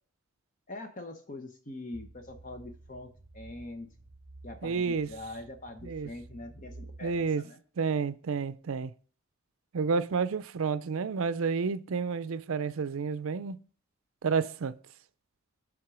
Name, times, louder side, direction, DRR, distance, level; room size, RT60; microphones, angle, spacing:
voice 1, 0.7-3.9 4.4-7.6, left 2 dB, 35° left, 0.8 m, -43 dB
sound 1, 1.9-7.3, right 2 dB, 30° right, 4.1 m, -51 dB
voice 2, 4.6-5.1 5.8-6.1 7.0-7.4 7.8-8.9 9.7-13.6 14.2-14.7, right 5 dB, 70° right, 0.5 m, -30 dB
7.9 x 3.7 x 6.0 m
head